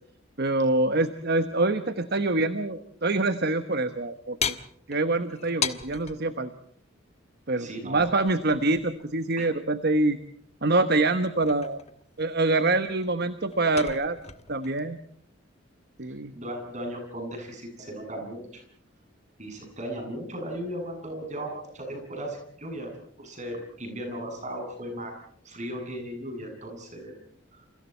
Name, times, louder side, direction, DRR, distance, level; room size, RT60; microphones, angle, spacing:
voice 1, 0.4-4.6 4.9-6.5 7.5-10.2 10.6-11.8 12.2-14.2 14.5-15.0 16.0-16.3, right 2 dB, 55° right, 10 dB, 1.2 m, -25 dB
sound 1, 4.4-6.2 8.0-9.1 11.0-12.2 12.6-14.8, left 7 dB, 35° left, 1.3 m, -35 dB
voice 2, 7.6-8.1 9.4-9.5 16.3-18.6 19.4-22.9 23.2-25.1 25.4-27.2 27.5-27.6, right 1 dB, 35° right, 3 dB, 7.8 m, -36 dB
29.0 x 28.5 x 4.5 m, 0.62 s
head